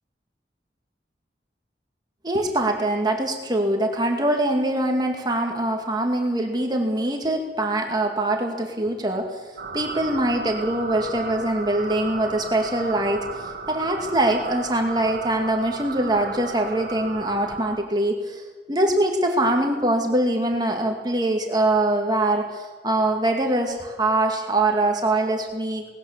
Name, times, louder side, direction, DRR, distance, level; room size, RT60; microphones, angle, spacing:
voice 1, 2.2-9.4 9.7-25.9, right 1 dB, 25° right, 2 dB, 2.2 m, -23 dB
sound 1, 9.6-17.8, right 4 dB, 55° right, 2.5 m, -35 dB
19.5 x 18.5 x 7.3 m, 1.4 s
head